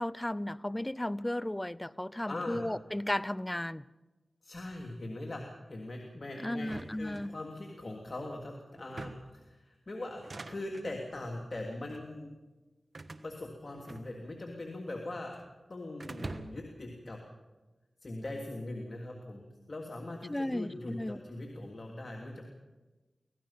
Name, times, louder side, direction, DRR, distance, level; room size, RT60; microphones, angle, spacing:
voice 1, 0.0-3.9 6.4-7.3 20.3-21.2, left 1 dB, 20° left, 19 dB, 0.6 m, -34 dB
voice 2, 2.3-2.6 4.4-10.2 10.5-12.3 13.2-15.4 15.7-17.2 18.0-22.4, left 2 dB, 55° left, 1 dB, 2.9 m, -41 dB
sound 1, 6.6-7.8 8.8-9.4 10.1-10.9 11.7-12.1 12.9-14.5 14.7-15.5 16.0-16.8, right 2 dB, 55° right, 1.5 m, -46 dB
25.0 x 18.0 x 5.8 m, 1.2 s
cardioid pair, 40°, 0 cm